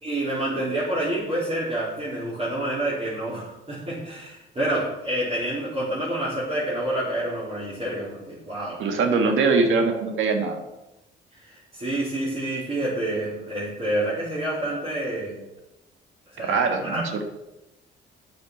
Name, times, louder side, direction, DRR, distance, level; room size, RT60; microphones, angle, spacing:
voice 1, 0.0-8.8 11.3-15.4 16.3-17.0, right 1 dB, 30° right, -9 dB, 3.7 m, -28 dB
voice 2, 8.8-10.6 16.4-17.2, right 4 dB, 80° right, 5 dB, 1.5 m, -22 dB
9.3 x 6.6 x 5.9 m, 0.97 s
cardioid pair, 90°, 20 cm